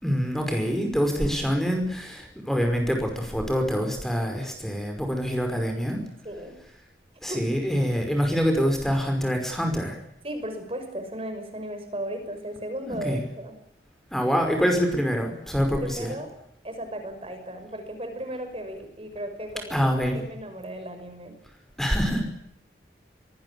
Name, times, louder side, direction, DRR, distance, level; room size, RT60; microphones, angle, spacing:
voice 1, 0.0-6.0 7.2-10.0 12.9-13.2 14.1-16.1 19.7-20.2 21.8-22.2, equal, ahead, 4 dB, 5.4 m, -25 dB
voice 2, 6.2-6.6 7.3-7.5 8.1-8.2 10.2-13.6 15.7-16.3 16.6-19.8 20.1-21.3, right 1 dB, 35° right, 7 dB, 5.9 m, -35 dB
24.0 x 20.0 x 8.6 m, 0.79 s
head